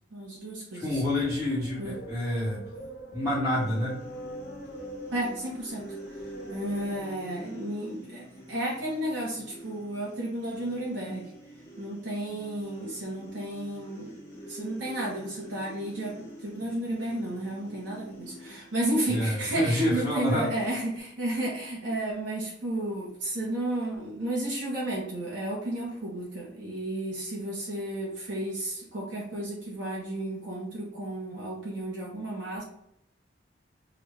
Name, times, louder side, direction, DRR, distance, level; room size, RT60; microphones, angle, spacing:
voice 1, 0.1-1.0 1.8-1.9 5.1-5.9 6.5-11.3 11.8-32.6, right 1 dB, 75° right, -5 dB, 1.1 m, -32 dB
voice 2, 0.7-2.6 3.1-4.0 19.1-20.5, left 1 dB, 10° right, -12 dB, 1.3 m, -28 dB
sound 1, 0.9-7.0, equal, 55° left, 1.0 m, -44 dB
sound 2, 3.5-21.0, right 1 dB, 15° left, 1.3 m, -46 dB
5.1 x 2.4 x 3.2 m, 0.75 s
head